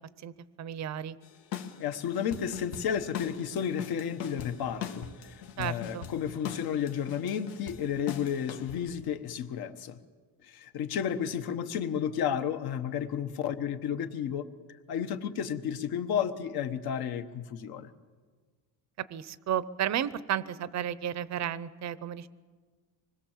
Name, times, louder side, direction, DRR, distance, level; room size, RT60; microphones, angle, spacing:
voice 1, 0.6-1.2 5.6-6.1 19.0-22.3, right 10 dB, 40° right, 17 dB, 0.7 m, -33 dB
sound 1, 1.2-8.9, left 9 dB, 75° left, 1.8 m, -41 dB
voice 2, 1.8-10.0 10.4-14.5 14.9-17.9, left 8 dB, 55° left, 9 dB, 1.3 m, -32 dB
25.5 x 20.5 x 7.4 m, 1.5 s
cardioid pair, 160°, 44 cm